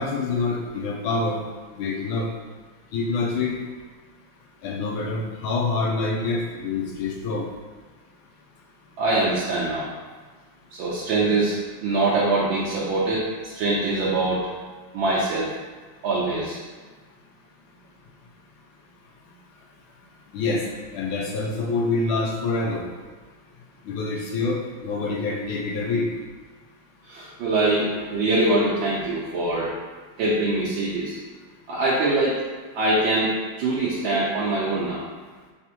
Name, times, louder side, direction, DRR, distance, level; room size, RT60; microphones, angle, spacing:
voice 1, 0.0-1.4 1.7-2.3 2.9-3.6 4.6-7.5 20.3-20.7 20.9-22.9 23.8-26.1, left 3 dB, 90° left, -1 dB, 1.5 m, -26 dB
voice 2, 9.0-9.9 10.7-11.6 11.8-14.4 14.9-15.5 16.0-16.6 27.0-29.7 30.2-31.2 31.7-32.4 32.7-33.3 33.6-35.0, right 2 dB, 80° right, -8 dB, 1.5 m, -23 dB
4.1 x 3.5 x 2.9 m, 1.4 s
omnidirectional pair, 2.2 m